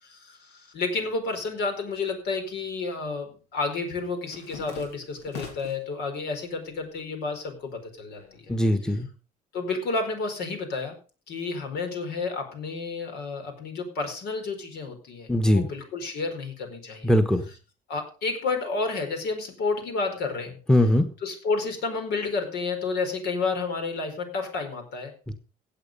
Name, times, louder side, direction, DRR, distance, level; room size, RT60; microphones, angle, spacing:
voice 1, 0.0-8.5 9.5-11.0 11.3-17.1 17.9-20.6 21.2-25.1, left 4 dB, 75° left, 5 dB, 4.5 m, -31 dB
sound 1, 2.5-2.8 3.1-5.9 6.4-7.0 7.3-9.0, left 5 dB, 90° left, 4.1 m, -44 dB
voice 2, 8.5-9.1 15.3-15.7 17.0-17.4 20.7-21.1 25.3-25.4, left 1 dB, 5° left, 7 dB, 1.3 m, -20 dB
16.0 x 8.2 x 5.4 m, 0.37 s
cardioid pair, 110°, 17 cm